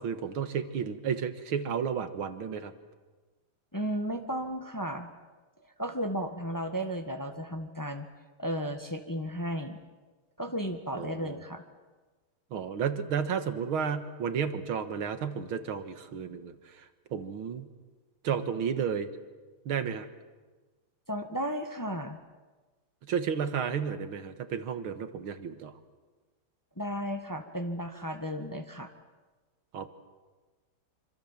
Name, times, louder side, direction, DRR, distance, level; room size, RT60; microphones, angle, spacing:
voice 1, 0.0-2.7 10.9-11.4 12.5-16.9 17.1-17.7 18.2-19.1 19.7-20.1 23.0-25.7 29.7-29.9, right 7 dB, 70° right, 9 dB, 2.3 m, -32 dB
voice 2, 3.7-5.1 5.8-8.1 8.4-9.8 10.4-11.6 21.1-22.2 26.8-28.9, equal, 10° left, 6 dB, 1.3 m, -34 dB
26.5 x 26.0 x 7.4 m, 1.3 s
omnidirectional pair, 2.4 m